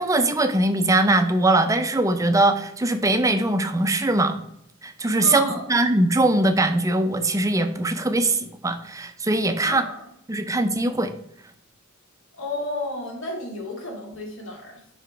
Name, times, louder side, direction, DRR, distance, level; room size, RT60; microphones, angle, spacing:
voice 1, 0.0-4.4 4.8-9.9 10.3-11.1, right 2 dB, 15° right, 8 dB, 0.5 m, -21 dB
voice 2, 5.2-5.7 9.6-10.1 12.3-14.8, left 2 dB, 70° left, 1 dB, 1.7 m, -32 dB
5.9 x 4.8 x 3.3 m, 0.73 s
head